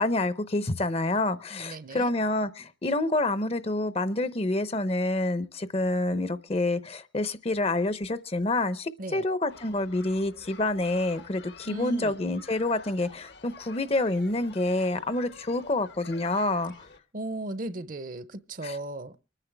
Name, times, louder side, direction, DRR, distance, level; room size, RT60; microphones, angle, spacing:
voice 1, 0.0-16.9 18.6-18.8, left 2 dB, 30° left, 0.6 m, -28 dB
voice 2, 1.5-2.1 9.0-9.3 11.6-12.2 17.1-19.2, right 1 dB, 45° right, 0.7 m, -36 dB
sound 1, 9.5-17.0, left 4 dB, 65° left, 1.0 m, -49 dB
25.0 x 9.9 x 3.4 m
head